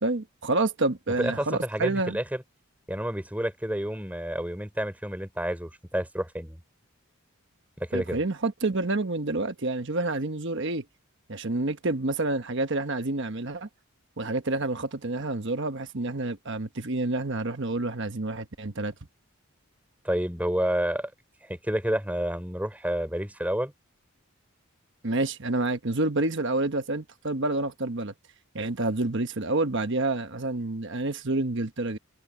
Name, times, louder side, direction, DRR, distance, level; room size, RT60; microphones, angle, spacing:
voice 1, 0.0-2.2 7.9-10.8 11.3-13.7 14.2-18.9 25.0-28.1 28.5-32.0, right 2 dB, 55° right, 1.2 m, -28 dB
voice 2, 1.2-2.4 2.9-6.6 7.8-8.2 20.0-21.1 21.4-23.7, equal, 5° right, 3.6 m, -29 dB
head